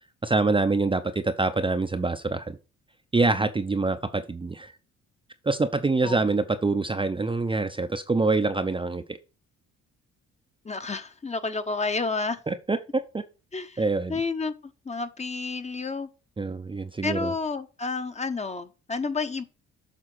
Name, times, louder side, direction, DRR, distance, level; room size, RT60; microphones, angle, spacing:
voice 1, 0.2-2.6 3.1-4.7 5.4-9.2 12.5-13.2 13.8-14.1 16.4-17.3, right 3 dB, 15° right, 0.6 m, -25 dB
voice 2, 10.6-12.4 13.5-13.8 14.1-16.1 17.0-19.4, left 4 dB, 20° left, 0.8 m, -30 dB
7.5 x 3.6 x 6.0 m
cardioid pair, 90°, 30 cm